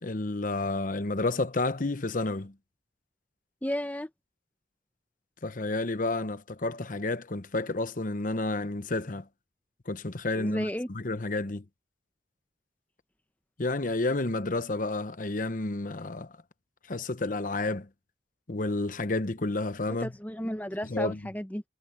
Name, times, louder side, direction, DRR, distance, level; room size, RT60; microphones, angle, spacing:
voice 1, 0.0-2.5 5.4-9.3 9.9-11.6 13.6-16.3 16.9-17.9 18.5-20.1 20.9-21.2, left 2 dB, 45° left, 0.9 m, -30 dB
voice 2, 3.6-4.1 10.4-10.9 19.9-21.6, equal, 10° left, 0.9 m, -33 dB
head